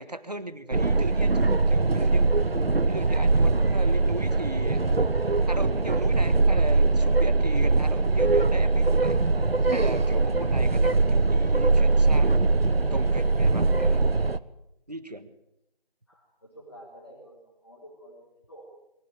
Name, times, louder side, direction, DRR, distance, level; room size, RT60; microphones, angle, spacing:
voice 1, 0.0-2.3 2.8-4.8 5.5-9.2 9.7-12.4 12.9-14.0 14.9-15.3, right 1 dB, 40° right, 12 dB, 1.6 m, -37 dB
sound 1, 0.7-14.4, right 3 dB, 75° right, 1.1 m, -22 dB
voice 2, 16.1-18.6, equal, 25° left, -4 dB, 4.1 m, -49 dB
23.0 x 16.0 x 9.0 m, 0.84 s
figure-of-eight pair, 180°, 30 cm